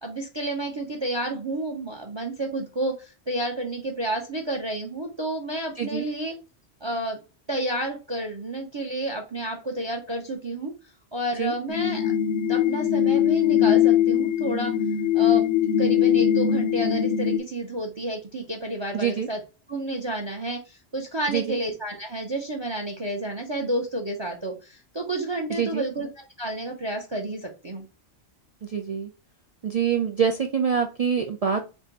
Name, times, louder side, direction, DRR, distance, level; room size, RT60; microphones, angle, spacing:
voice 1, 0.0-6.4 6.8-7.2 7.5-10.7 11.1-12.1 12.5-14.7 15.1-15.5 15.8-19.4 19.7-27.8, right 1 dB, 30° right, 3 dB, 0.6 m, -30 dB
voice 2, 5.8-6.1 11.4-11.5 18.9-19.3 21.3-21.6 25.6-25.8 28.6-29.1 29.6-31.6, right 7 dB, 70° right, 3 dB, 0.3 m, -25 dB
sound 1, 11.7-17.4, left 10 dB, 80° left, 0.9 m, -21 dB
4.5 x 2.2 x 3.8 m, 0.31 s
omnidirectional pair, 1.2 m